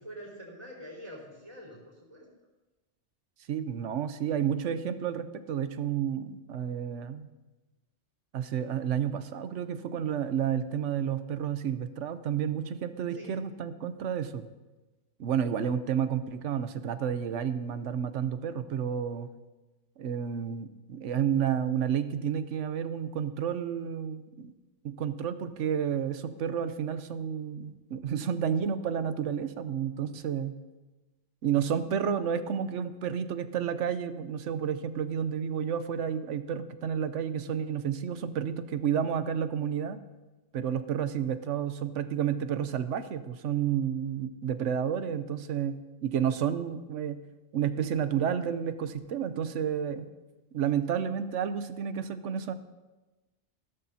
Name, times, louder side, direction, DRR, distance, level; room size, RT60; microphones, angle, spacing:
voice 1, 0.0-2.3 13.1-13.4, equal, 25° right, -3 dB, 4.2 m, -45 dB
voice 2, 3.5-7.3 8.3-14.4 15.2-19.3 20.0-24.5 24.8-30.5 31.4-40.0 40.5-47.2 47.5-50.1 50.5-52.5, right 8 dB, 80° right, 12 dB, 1.0 m, -31 dB
16.0 x 13.0 x 2.8 m, 1.1 s
omnidirectional pair, 1.2 m